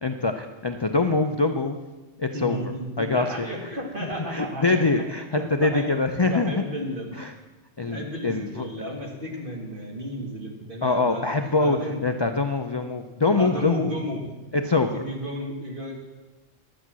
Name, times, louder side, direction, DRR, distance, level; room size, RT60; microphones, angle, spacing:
voice 1, 0.0-1.8 2.2-3.5 4.3-6.6 7.2-7.3 7.8-8.7 10.8-13.9 14.5-15.0, left 3 dB, 40° left, 6 dB, 0.4 m, -24 dB
voice 2, 2.3-5.9 6.2-7.1 7.9-11.3 11.6-12.0 13.4-14.2 14.9-16.0, equal, 45° right, 0 dB, 2.2 m, -33 dB
11.0 x 8.2 x 7.5 m, 1.2 s
omnidirectional pair, 1.3 m